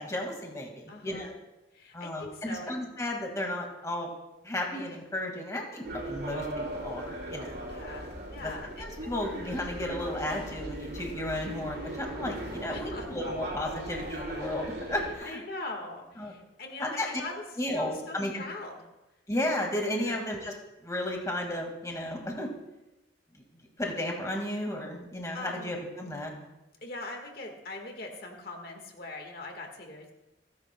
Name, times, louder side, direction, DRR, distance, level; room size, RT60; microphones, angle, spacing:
voice 1, 0.0-1.3 1.9-4.1 4.4-7.5 8.4-8.5 8.8-15.4 16.2-16.3 16.8-17.1 17.6-18.4 19.3-20.5 20.8-22.5 23.8-26.3, left 1 dB, 15° left, 1 dB, 2.0 m, -33 dB
voice 2, 0.9-1.3 1.7-2.7 7.7-8.8 12.7-13.1 15.2-18.9 19.9-20.2 25.3-25.8 26.8-30.1, left 2 dB, 55° left, 2 dB, 1.7 m, -41 dB
sound 1, 5.8-15.1, right 1 dB, 60° right, 4.2 m, -38 dB
28.5 x 10.0 x 2.3 m, 0.97 s
head